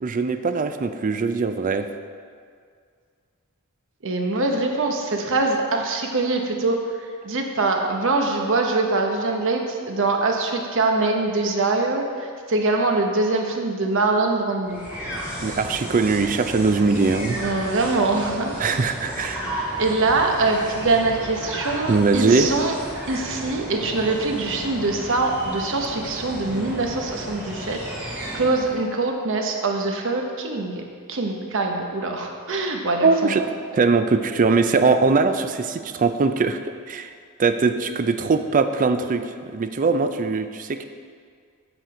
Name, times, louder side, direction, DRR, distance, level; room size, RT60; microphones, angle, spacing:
voice 1, 0.0-1.9 15.4-17.4 18.6-19.5 21.9-22.6 33.0-33.4 33.7-36.6 36.9-37.1 37.4-40.8, right 4 dB, 35° right, 9 dB, 0.4 m, -21 dB
voice 2, 4.0-6.8 7.2-14.8 17.4-18.9 19.8-22.7 23.1-30.8 31.1-33.3, right 3 dB, 60° right, 3 dB, 0.9 m, -23 dB
sound 1, 14.6-28.9, right 1 dB, 5° right, 1.9 m, -34 dB
8.0 x 6.0 x 5.0 m, 2.1 s
head